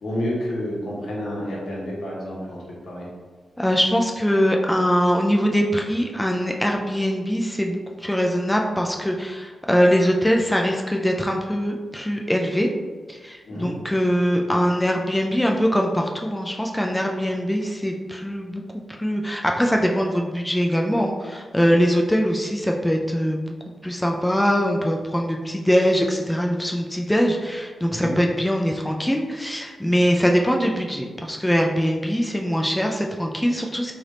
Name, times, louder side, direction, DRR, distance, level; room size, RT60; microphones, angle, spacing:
voice 1, 0.0-2.6 2.8-3.1 13.5-13.7 27.9-28.2, left 1 dB, 80° left, -5 dB, 1.2 m, -29 dB
voice 2, 3.6-12.7 13.1-18.6 19.0-23.4 23.8-33.9, equal, 5° left, 1 dB, 0.3 m, -22 dB
3.2 x 2.5 x 4.1 m, 1.4 s
wide cardioid pair, 115°, 0 cm